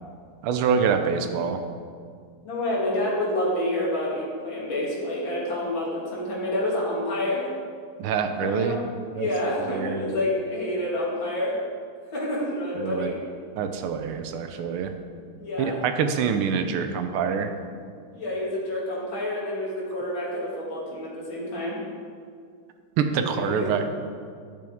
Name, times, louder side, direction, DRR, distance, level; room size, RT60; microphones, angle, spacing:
voice 1, 0.4-1.6 8.0-8.8 9.1-9.3 9.7-10.2 12.7-13.1 13.6-14.9 15.6-17.5 23.0-23.8, right 6 dB, 80° right, 7 dB, 1.5 m, -25 dB
voice 2, 2.4-7.4 8.3-8.8 9.1-11.5 12.1-13.2 15.4-15.8 18.1-21.8 23.1-23.9, left 1 dB, 60° left, -5 dB, 2.6 m, -28 dB
10.5 x 7.0 x 3.5 m, 2.1 s
omnidirectional pair, 2.4 m